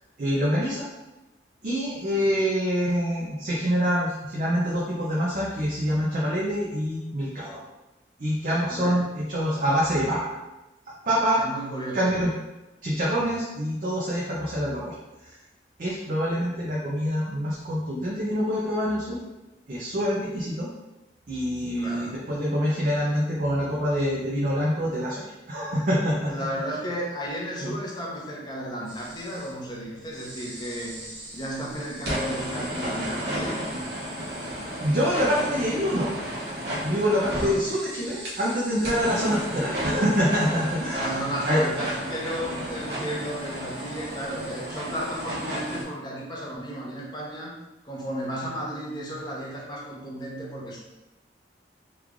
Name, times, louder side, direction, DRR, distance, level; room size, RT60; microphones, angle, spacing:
voice 1, 0.2-0.9 1.6-7.6 8.2-10.3 11.1-11.4 11.9-12.3 12.8-14.9 15.2-15.3 15.8-19.2 19.7-20.7 21.3-26.3 27.6-27.7 34.4-34.5 34.8-36.1 36.8-41.1 41.5-41.6, equal, 45° right, -5 dB, 0.5 m, -25 dB
voice 2, 8.7-9.0 11.4-12.2 21.7-22.1 26.3-31.0 31.3-33.6 37.4-37.6 40.9-47.5 47.8-50.8, equal, 25° left, -4 dB, 0.7 m, -34 dB
sound 1, 28.9-29.5 30.1-45.8, equal, 65° right, 0.9 m, -33 dB
3.1 x 2.4 x 3.6 m, 1.0 s
head